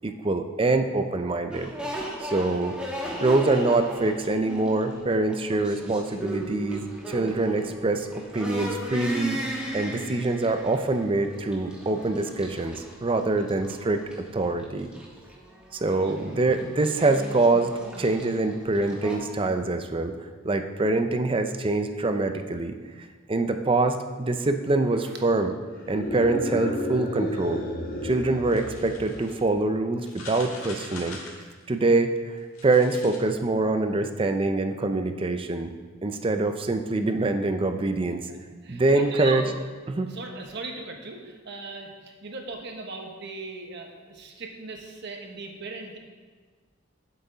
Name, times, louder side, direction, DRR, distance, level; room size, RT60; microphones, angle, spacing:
voice 1, 0.0-1.7 2.2-2.8 3.2-9.4 9.7-14.0 14.3-14.9 15.7-20.1 20.4-22.8 23.3-25.5 25.9-27.6 28.0-31.2 31.7-32.1 32.6-35.7 36.0-38.2 38.7-39.5 39.9-40.1, right 2 dB, 25° right, 7 dB, 0.5 m, -25 dB
sound 1, 1.5-19.2, equal, 5° right, 1.4 m, -37 dB
sound 2, 25.8-29.4, left 1 dB, 45° left, 1.3 m, -32 dB
sound 3, 28.5-29.4 30.0-31.7 32.4-33.2, left 3 dB, 90° left, 1.6 m, -43 dB
voice 2, 38.3-39.6 40.1-46.0, right 3 dB, 55° right, 2 dB, 1.1 m, -38 dB
8.0 x 7.8 x 3.9 m, 1.5 s
head